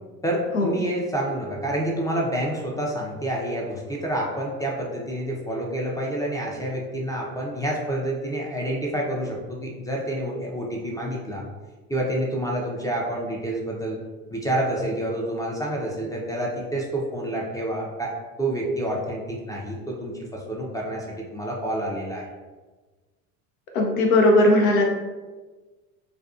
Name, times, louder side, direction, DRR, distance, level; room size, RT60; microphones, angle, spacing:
voice 1, 0.2-11.4 11.9-14.0 14.3-18.1 18.4-22.3, right 1 dB, 10° left, -2 dB, 0.4 m, -28 dB
voice 2, 23.7-24.9, left 1 dB, 90° left, 1 dB, 0.6 m, -18 dB
2.5 x 2.3 x 2.4 m, 1.3 s
hypercardioid pair, 75°, 41 cm